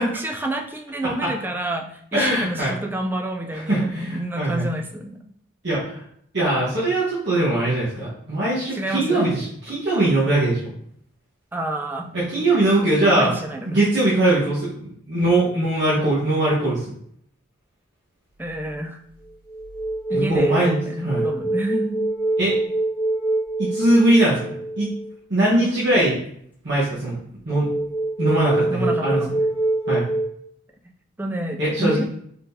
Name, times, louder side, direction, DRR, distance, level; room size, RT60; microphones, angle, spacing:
voice 1, 0.0-5.2 8.7-9.2 11.5-12.5 13.0-13.7 18.4-19.0 20.1-22.0 28.7-29.3 31.2-32.0, right 1 dB, 10° right, 3 dB, 0.3 m, -28 dB
voice 2, 2.1-2.7 3.5-4.7 5.6-6.0 6.3-10.7 12.1-13.3 13.6-16.8 20.1-20.8 21.0-21.3 22.4-22.5 23.6-24.9 25.3-26.2 26.6-27.2 27.4-27.7 28.2-29.2 29.9-30.0 31.6-32.0, right 1 dB, 55° right, -9 dB, 1.2 m, -21 dB
sound 1, 18.5-18.7 19.2-25.1 27.6-30.2, right 2 dB, 10° left, 0.7 m, -25 dB
4.1 x 3.8 x 2.7 m, 0.67 s
head